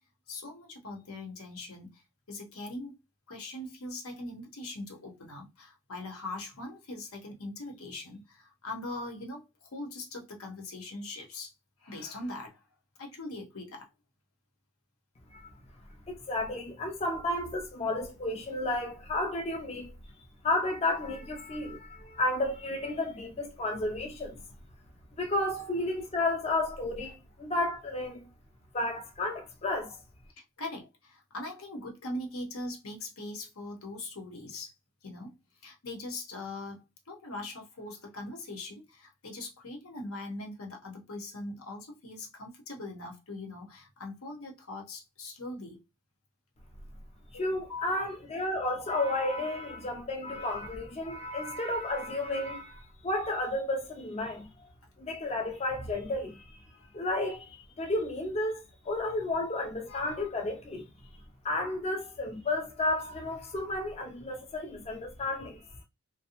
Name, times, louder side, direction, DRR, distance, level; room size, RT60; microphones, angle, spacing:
voice 1, 0.3-2.0 2.3-3.0 3.3-11.5 11.8-12.6 13.0-13.9 30.6-34.7 35.0-35.3 35.6-45.8 47.3-48.0 48.3-48.5, left 2 dB, 85° left, 0.9 m, -41 dB
voice 2, 16.1-19.9 20.4-24.4 25.2-28.3 28.7-30.0 47.3-54.5 55.0-56.6 56.9-60.9 61.4-65.7, left 2 dB, 30° left, 0.4 m, -32 dB
2.6 x 2.1 x 2.8 m
head